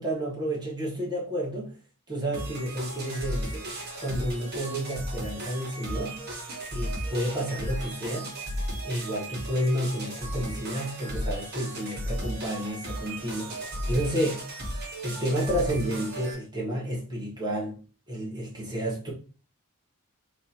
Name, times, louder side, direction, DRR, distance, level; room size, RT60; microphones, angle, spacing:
voice 1, 0.0-1.7 2.1-3.6 4.0-6.2 6.7-8.3 8.8-14.5 15.0-17.8 18.1-19.1, equal, 20° right, 1.3 m, -30 dB
sound 1, 2.3-16.3, right 1 dB, 50° right, 1.3 m, -35 dB
3.8 x 2.8 x 2.9 m
head